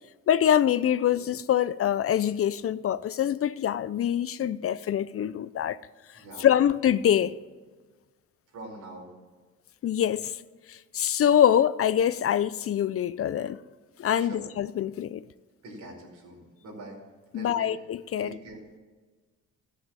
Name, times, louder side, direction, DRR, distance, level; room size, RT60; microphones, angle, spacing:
voice 1, 0.3-5.8 6.4-7.3 9.8-10.4 10.7-13.6 14.0-15.2 17.3-18.3, left 10 dB, 50° left, 0.5 m, -24 dB
voice 2, 6.1-6.5 8.5-9.1 14.2-14.5 15.6-17.0 17.3-17.7 18.2-18.6, right 1 dB, 75° right, 4.9 m, -43 dB
14.0 x 7.8 x 7.5 m
cardioid pair, 90°, 30 cm